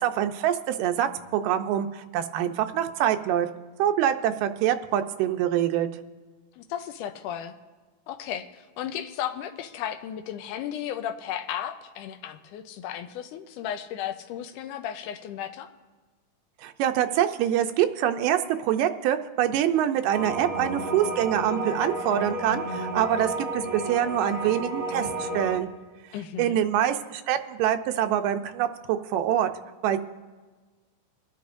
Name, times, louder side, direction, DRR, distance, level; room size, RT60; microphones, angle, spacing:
voice 1, 0.0-3.5 3.8-5.9 16.6-25.7 26.4-29.5 29.8-30.0, right 11 dB, 90° right, 8 dB, 2.3 m, -25 dB
voice 2, 6.6-7.5 8.1-15.7 26.1-26.6, left 10 dB, 80° left, 8 dB, 2.1 m, -34 dB
sound 1, 20.1-25.6, right 1 dB, 35° right, 1.5 m, -32 dB
24.0 x 10.5 x 2.6 m, 1.3 s
omnidirectional pair, 3.8 m